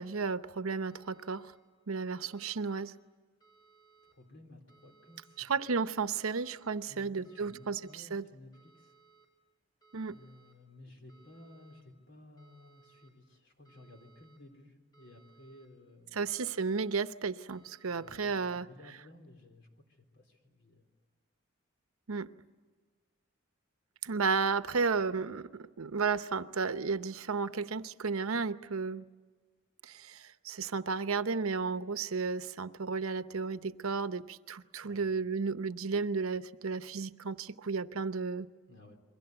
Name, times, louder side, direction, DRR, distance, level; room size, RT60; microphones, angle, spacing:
voice 1, 0.0-1.5 1.9-2.9 5.4-8.2 9.9-10.2 16.1-18.7 22.1-22.3 24.0-29.0 29.8-38.5, right 5 dB, 90° right, 12 dB, 0.8 m, -33 dB
sound 1, 0.8-1.6 2.1-2.9 3.4-4.1 4.7-5.4 6.0-6.7 7.2-8.0 8.5-9.3 9.8-10.5 11.1-11.8 12.4-13.1 13.6-14.4 14.9-15.7 16.2-16.9 17.5-18.2, right 5 dB, 20° left, 5.6 m, -64 dB
voice 2, 4.0-5.5 6.9-9.0 10.1-16.4 17.8-20.9 34.8-35.3 38.7-39.0, left 2 dB, 60° left, 4 dB, 3.7 m, -56 dB
28.5 x 22.5 x 8.0 m, 1.4 s
head